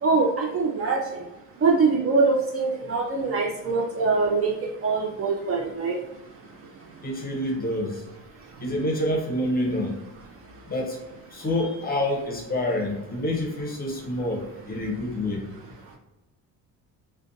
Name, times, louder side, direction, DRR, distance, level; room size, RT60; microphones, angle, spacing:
voice 1, 0.0-1.1 1.6-4.6 4.8-6.0, right 4 dB, 40° right, 0 dB, 0.4 m, -23 dB
voice 2, 7.0-8.0 8.6-9.9 10.7-11.0 11.3-15.4, left 1 dB, 25° left, 0 dB, 0.7 m, -27 dB
2.5 x 2.2 x 2.6 m, 1.0 s
cardioid pair, 105°, 38 cm